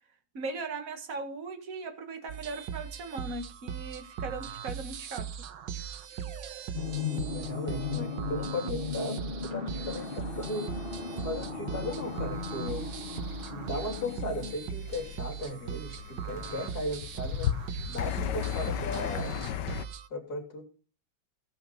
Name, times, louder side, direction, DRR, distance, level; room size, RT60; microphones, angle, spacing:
voice 1, 0.3-5.3, right 3 dB, 50° right, 6 dB, 2.1 m, -38 dB
sound 1, 2.3-20.1, right 8 dB, 80° right, 1.6 m, -39 dB
sound 2, 6.7-14.5, left 5 dB, 30° left, 1.7 m, -36 dB
voice 2, 7.1-10.7 11.2-12.9 13.5-17.5 17.9-19.3 20.1-20.7, left 1 dB, 55° left, 2 dB, 3.7 m, -36 dB
sound 3, 11.9-19.8, left 10 dB, 75° left, 1.4 m, -37 dB
17.5 x 5.9 x 5.4 m, 0.37 s
omnidirectional pair, 1.9 m